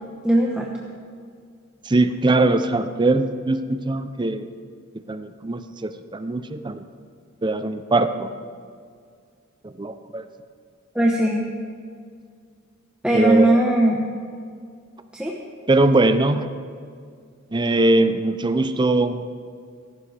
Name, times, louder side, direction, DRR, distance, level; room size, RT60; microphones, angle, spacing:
voice 1, 0.2-0.7 10.9-11.5 13.0-14.1 15.1-15.4, right 1 dB, 5° right, -2 dB, 0.9 m, -19 dB
voice 2, 1.9-4.5 5.1-6.8 7.4-8.3 9.6-10.2 13.1-13.6 15.7-16.5 17.5-19.2, right 2 dB, 20° right, 10 dB, 0.5 m, -21 dB
17.0 x 14.5 x 3.4 m, 2.2 s
head